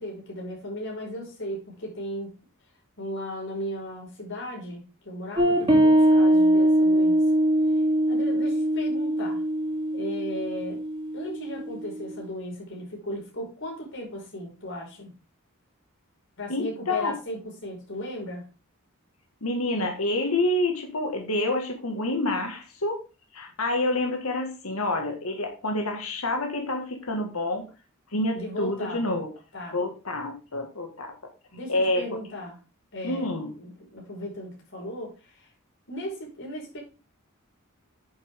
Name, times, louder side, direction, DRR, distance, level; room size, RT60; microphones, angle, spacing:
voice 1, 0.0-2.4 3.0-7.2 8.1-9.4 9.9-10.8 11.1-15.1 16.4-18.5 28.3-29.2 29.5-29.8 31.5-32.6 32.9-33.3 33.6-35.5 35.9-36.8, equal, 60° left, -1 dB, 5.1 m, -36 dB
sound 1, 5.4-12.3, right 1 dB, 25° right, 2.8 m, -22 dB
voice 2, 16.5-17.1 19.4-23.0 23.3-27.7 28.1-29.3 29.7-31.1 31.7-32.2 33.0-33.5, left 1 dB, 90° left, 3 dB, 1.8 m, -28 dB
9.9 x 7.0 x 3.6 m, 0.31 s
head